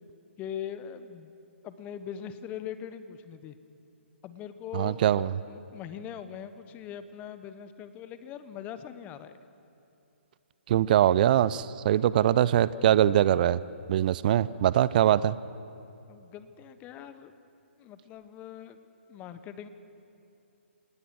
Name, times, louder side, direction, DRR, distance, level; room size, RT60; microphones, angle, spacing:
voice 1, 0.4-1.3 1.6-3.5 4.2-9.4 16.1-17.3 17.8-18.8 19.1-19.7, left 9 dB, 20° left, 11 dB, 1.2 m, -41 dB
voice 2, 4.7-5.3 10.7-13.6 13.9-15.4, right 11 dB, 40° right, 18 dB, 0.5 m, -22 dB
26.5 x 20.0 x 6.3 m, 2.8 s
figure-of-eight pair, 135°, 7 cm